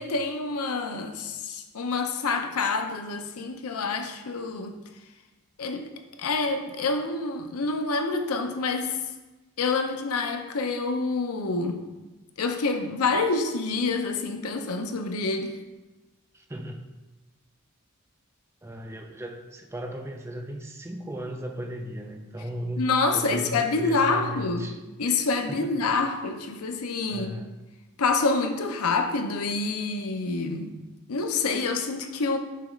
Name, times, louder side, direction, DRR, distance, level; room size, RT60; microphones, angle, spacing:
voice 1, 0.0-4.7 5.6-5.9 6.2-9.0 9.6-11.8 12.4-15.6 22.8-24.7 25.0-27.4 28.0-30.7 31.1-32.4, left 3 dB, 85° left, 6 dB, 0.6 m, -27 dB
voice 2, 16.3-16.8 18.6-22.9 23.1-24.8 25.1-25.2 25.5-25.9 27.1-27.5, equal, 10° right, 3 dB, 0.4 m, -36 dB
6.9 x 3.0 x 5.0 m, 1.1 s
head